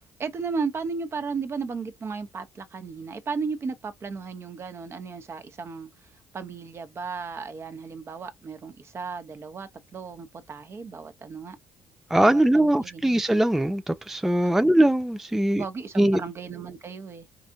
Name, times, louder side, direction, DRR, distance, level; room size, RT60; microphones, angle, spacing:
voice 1, 0.2-5.9 6.3-11.6 12.2-13.0 14.4-14.5 15.5-17.3, right 5 dB, 40° right, 0.9 m, -34 dB
voice 2, 12.1-15.6 16.0-16.2, right 1 dB, 5° right, 0.3 m, -21 dB
4.8 x 2.5 x 2.7 m
supercardioid pair, 80°, 6 cm